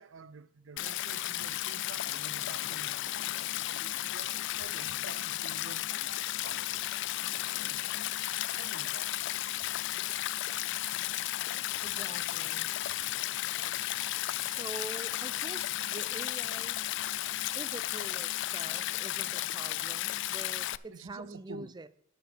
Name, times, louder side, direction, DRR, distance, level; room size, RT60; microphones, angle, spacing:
voice 1, 0.0-7.0 7.6-7.8 8.5-9.2 20.9-21.7, right 5 dB, 70° right, 0.5 m, -50 dB
Stream, 0.8-20.8, left 15 dB, 60° left, 0.3 m, -34 dB
voice 2, 11.8-12.7 14.5-16.8 17.6-21.9, right 2 dB, 20° right, 0.5 m, -45 dB
10.5 x 5.2 x 6.9 m
head